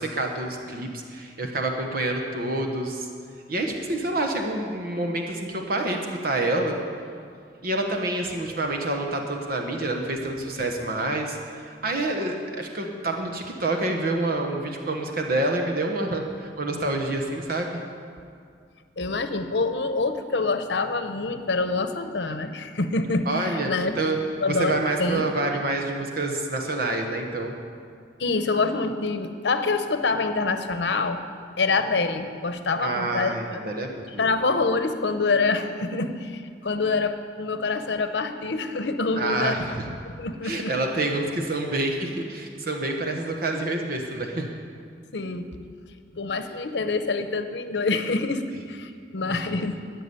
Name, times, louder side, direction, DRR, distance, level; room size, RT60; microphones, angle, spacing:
voice 1, 0.0-3.1 3.5-6.8 7.6-17.8 23.3-23.7 24.0-24.2 24.5-27.5 32.8-34.3 39.2-39.8 40.4-44.6 49.3-49.5, right 2 dB, 55° right, 3 dB, 1.2 m, -27 dB
voice 2, 19.0-24.0 24.4-24.7 25.0-25.2 28.2-31.2 31.6-33.6 34.2-39.6 40.0-40.8 45.1-45.5 46.1-48.4 48.7-49.7, left 3 dB, 75° left, 9 dB, 0.8 m, -26 dB
14.0 x 6.1 x 9.6 m, 2.2 s
head